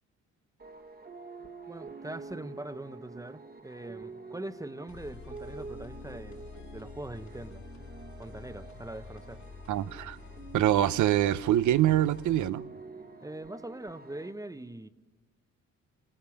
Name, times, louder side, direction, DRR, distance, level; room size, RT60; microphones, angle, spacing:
sound 1, 0.6-14.3, right 4 dB, 30° right, 1.4 m, -48 dB
voice 1, 1.7-7.6 8.2-9.4 13.2-14.9, right 1 dB, 10° right, 1.0 m, -42 dB
sound 2, 4.9-12.5, left 5 dB, 70° left, 4.6 m, -48 dB
voice 2, 9.7-10.2 10.5-12.7, right 12 dB, 75° right, 0.8 m, -25 dB
26.0 x 17.0 x 7.1 m
cardioid pair, 90°, 30 cm